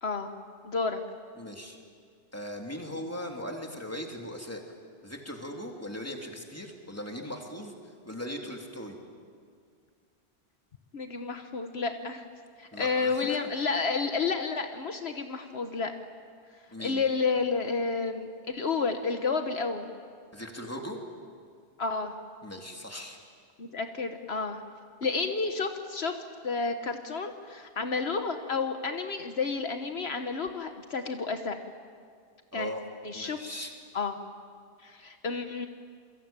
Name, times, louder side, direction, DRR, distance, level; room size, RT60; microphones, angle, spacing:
voice 1, 0.6-1.0 10.9-12.2 12.6-15.9 16.8-19.9 21.8-22.1 23.6-24.6 25.0-26.1 26.4-31.6 32.5-32.7 33.0-33.6 33.9-34.2 34.8-35.7, left 4 dB, 70° left, 6 dB, 1.5 m, -31 dB
voice 2, 1.4-1.8 2.3-4.6 5.0-9.0 12.7-13.4 16.7-17.0 20.3-21.0 22.4-23.2 32.5-32.8 33.1-33.7, equal, 15° left, 1 dB, 3.2 m, -39 dB
28.0 x 23.0 x 9.0 m, 2.1 s
omnidirectional pair, 1.1 m